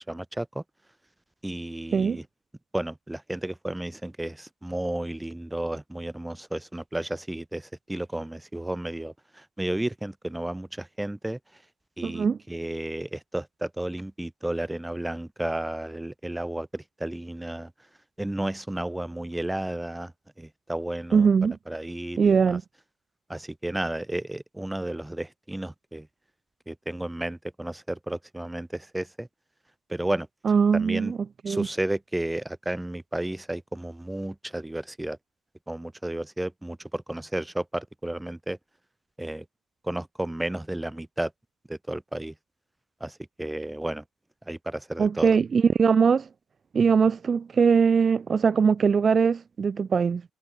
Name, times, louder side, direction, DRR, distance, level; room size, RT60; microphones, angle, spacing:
voice 1, 0.1-0.6 1.4-2.2 2.7-11.6 12.0-17.7 18.2-20.1 20.4-21.3 21.7-22.6 23.3-26.1 26.7-29.3 29.9-30.3 30.7-31.1 31.5-35.2 35.7-38.6 39.2-39.4 39.8-41.3 41.7-42.3 43.0-44.0 44.5-45.4, right 1 dB, 5° right, 1.1 m, -32 dB
voice 2, 12.0-12.4 21.1-21.6 22.2-22.6 30.4-31.2 31.4-31.7 45.0-46.3 46.7-50.2, right 6 dB, 30° right, 0.7 m, -21 dB
cardioid pair, 160°, 0 cm